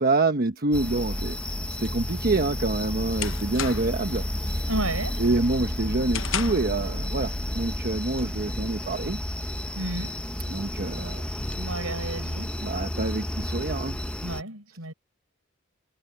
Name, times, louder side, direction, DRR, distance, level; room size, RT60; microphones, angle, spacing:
voice 1, 0.0-1.5 1.8-4.6 5.2-9.2 10.5-11.3 12.6-14.0, right 2 dB, 45° right, 1.1 m, -27 dB
sound 1, 0.7-14.4, equal, 5° left, 0.9 m, -31 dB
sound 2, 3.0-4.1 4.5-4.8 5.2-6.8, left 10 dB, 60° left, 0.9 m, -34 dB
voice 2, 4.7-5.2 9.8-10.2 11.6-12.5 14.2-14.9, right 2 dB, 75° right, 5.6 m, -32 dB
head